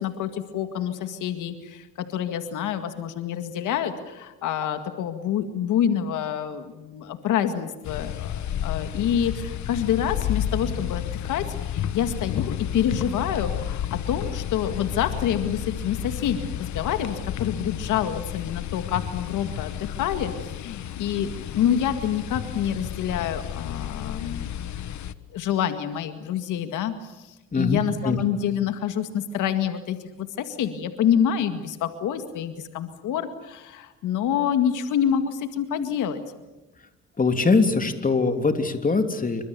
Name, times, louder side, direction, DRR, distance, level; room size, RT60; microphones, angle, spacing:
voice 1, 0.0-24.6 25.3-36.2, left 9 dB, 85° left, 8 dB, 2.1 m, -27 dB
sound 1, 7.8-25.1, left 10 dB, 70° left, 1.3 m, -32 dB
voice 2, 27.5-28.2 37.2-39.5, left 3 dB, 25° left, 7 dB, 3.2 m, -22 dB
28.0 x 24.5 x 7.0 m, 1.0 s
cardioid pair, 90°, 30 cm